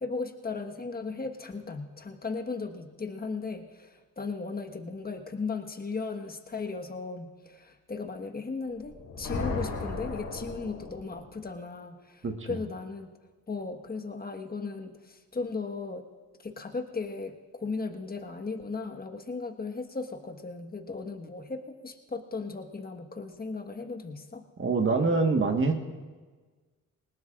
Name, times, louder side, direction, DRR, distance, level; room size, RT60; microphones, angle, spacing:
voice 1, 0.0-13.1 13.5-16.1 16.4-24.4, left 4 dB, 25° left, 5 dB, 1.5 m, -36 dB
sound 1, 8.8-11.4, left 3 dB, 75° left, 3.6 m, -35 dB
voice 2, 12.2-12.6 24.6-25.8, right 3 dB, 35° right, 4 dB, 1.6 m, -25 dB
20.0 x 18.0 x 2.5 m, 1.4 s
supercardioid pair, 55°, 34 cm